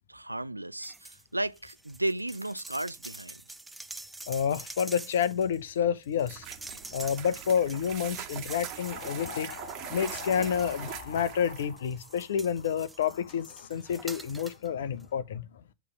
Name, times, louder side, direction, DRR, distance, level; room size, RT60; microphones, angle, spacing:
voice 1, 0.1-3.4, right 1 dB, 85° right, 0.4 m, -34 dB
sound 1, 0.8-1.2 1.5-11.3 11.8-14.7 15.0-15.1, right 2 dB, 5° right, 0.6 m, -47 dB
voice 2, 4.3-6.5 6.9-15.6, left 8 dB, 60° left, 0.8 m, -29 dB
sound 2, 6.2-11.8, right 10 dB, 40° right, 1.4 m, -42 dB
8.4 x 3.3 x 5.9 m
figure-of-eight pair, 90°, 0 cm